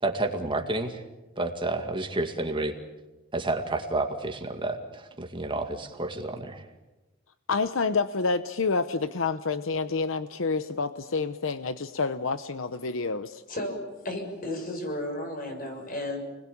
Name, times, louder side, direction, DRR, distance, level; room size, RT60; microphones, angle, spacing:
voice 1, 0.0-1.0 1.4-2.7 3.3-6.6, right 2 dB, 25° right, 4 dB, 2.2 m, -30 dB
voice 2, 7.5-13.4, left 4 dB, 70° left, 12 dB, 0.8 m, -28 dB
voice 3, 13.5-16.2, left 1 dB, 45° left, 4 dB, 6.7 m, -33 dB
29.5 x 21.0 x 8.7 m, 1.1 s
head